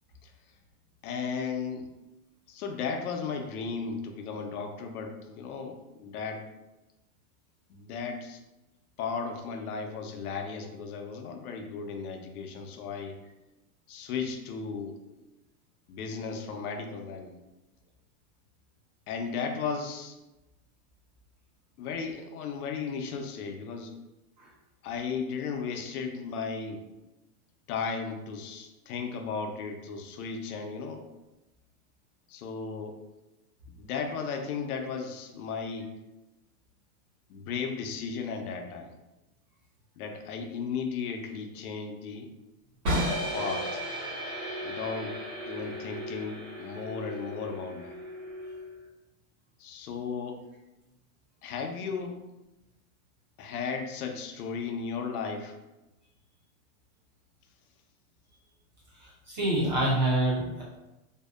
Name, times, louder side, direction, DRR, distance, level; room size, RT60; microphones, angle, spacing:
voice 1, 1.0-1.9 2.5-6.5 7.7-8.4 9.0-13.2 13.9-15.2 15.9-17.3 19.1-20.2 21.8-24.0 24.8-26.9 27.7-31.0 32.3-33.0 33.8-35.9 37.3-38.9 40.0-42.3 43.3-43.8 44.6-48.0 49.6-50.4 51.4-52.2 53.4-55.5, left 5 dB, 75° left, 4 dB, 0.5 m, -35 dB
sound 1, 42.8-48.8, equal, 65° right, 1.2 m, -34 dB
voice 2, 59.0-60.6, right 1 dB, 35° right, -6 dB, 0.4 m, -27 dB
2.6 x 2.1 x 2.3 m, 1.0 s
supercardioid pair, 175°, 44 cm